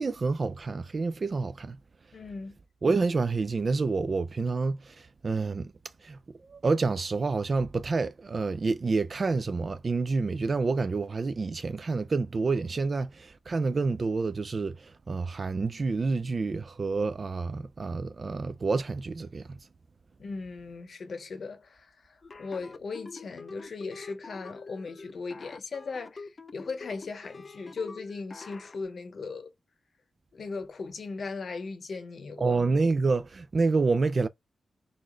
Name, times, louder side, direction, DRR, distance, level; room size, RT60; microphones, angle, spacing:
voice 1, 0.0-1.8 2.8-5.7 6.0-19.6 32.4-34.3, right 4 dB, 45° right, 0.4 m, -28 dB
voice 2, 2.1-2.6 20.2-21.9 22.4-29.5 30.3-32.6, left 4 dB, 65° left, 0.9 m, -38 dB
sound 1, 22.2-28.8, left 3 dB, 40° left, 0.4 m, -45 dB
4.0 x 2.5 x 3.1 m
wide cardioid pair, 110°, 0 cm